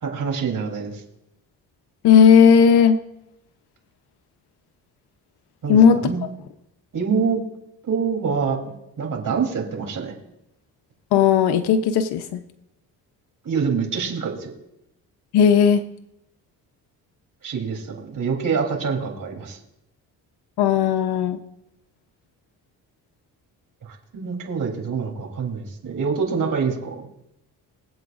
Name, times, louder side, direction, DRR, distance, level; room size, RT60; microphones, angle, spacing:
voice 1, 0.0-1.0 5.6-6.2 6.9-7.4 7.8-10.1 13.4-14.5 17.4-19.6 23.8-27.0, right 5 dB, 55° right, 1 dB, 3.4 m, -26 dB
voice 2, 2.0-3.0 5.7-6.0 11.1-12.4 15.3-15.8 20.6-21.4, left 7 dB, 75° left, 8 dB, 0.8 m, -15 dB
23.5 x 7.8 x 2.5 m, 0.83 s
supercardioid pair, 65°, 39 cm